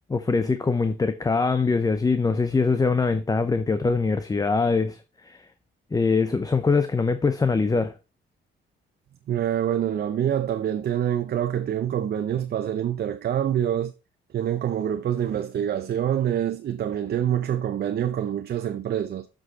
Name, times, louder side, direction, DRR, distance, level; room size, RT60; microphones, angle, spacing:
voice 1, 0.1-5.4 5.9-7.9, left 4 dB, 20° left, 0.6 m, -23 dB
voice 2, 9.3-13.9 14.3-19.3, right 10 dB, 55° right, 0.7 m, -26 dB
7.5 x 6.4 x 4.0 m
cardioid pair, 90°, 20 cm